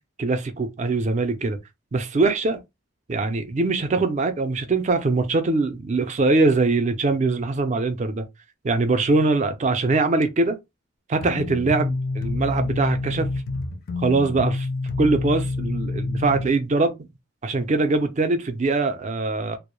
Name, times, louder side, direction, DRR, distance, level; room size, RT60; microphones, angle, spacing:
voice 1, 0.2-1.6 1.9-2.6 3.1-8.2 8.6-10.6 11.1-13.3 14.0-14.7 15.0-17.1 17.4-19.6, right 3 dB, 35° right, 0.4 m, -22 dB
sound 1, 11.2-16.5, left 3 dB, 50° left, 0.4 m, -28 dB
2.2 x 2.0 x 2.9 m
head